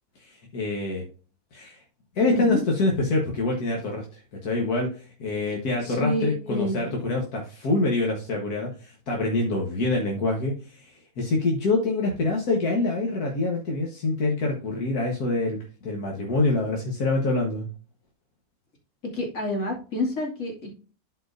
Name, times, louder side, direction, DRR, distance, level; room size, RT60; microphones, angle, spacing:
voice 1, 0.2-1.1 1.5-1.8 2.2-15.6 15.8-17.7, left 2 dB, 85° left, 0 dB, 1.9 m, -26 dB
voice 2, 5.8-6.8 19.1-20.7, left 2 dB, 65° left, -1 dB, 2.9 m, -28 dB
12.5 x 4.6 x 2.6 m, 0.37 s
omnidirectional pair, 1.6 m